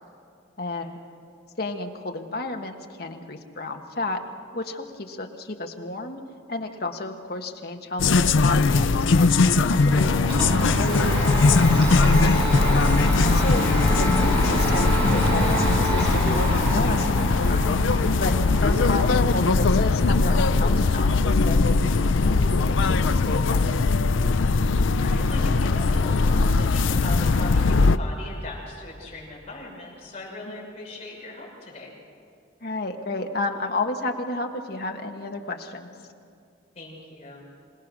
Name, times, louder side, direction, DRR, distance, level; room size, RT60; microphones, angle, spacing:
voice 1, 0.6-1.0 1.6-4.2 4.5-6.2 6.5-12.3 13.2-17.7 18.1-23.8 30.5-30.7 32.6-35.9, left 2 dB, 50° left, 3 dB, 1.5 m, -32 dB
sound 1, 8.0-28.0, left 3 dB, 80° left, 0.5 m, -20 dB
Domestic sounds home sounds, 9.5-25.3, right 1 dB, 25° right, 6.2 m, -29 dB
voice 2, 25.0-31.9 36.7-37.4, left 2 dB, 35° left, -4 dB, 6.1 m, -39 dB
26.5 x 18.5 x 6.2 m, 2.4 s
head